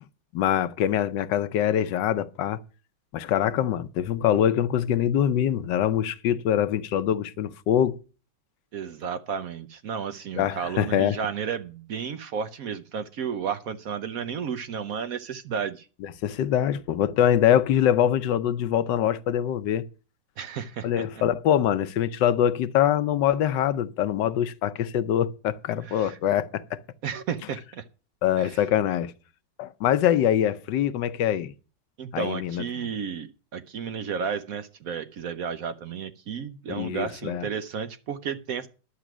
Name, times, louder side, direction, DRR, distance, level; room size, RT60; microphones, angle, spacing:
voice 1, 0.3-2.6 3.1-8.0 10.3-11.1 16.0-19.8 20.8-26.8 28.2-29.1 29.6-31.5 32.1-32.9 36.7-37.5, left 10 dB, 75° left, 1.3 m, -24 dB
voice 2, 8.7-15.9 20.4-21.0 25.8-26.2 27.0-27.8 28.4-28.6 32.0-38.7, right 7 dB, 65° right, 0.9 m, -32 dB
11.5 x 7.6 x 6.0 m
omnidirectional pair, 2.0 m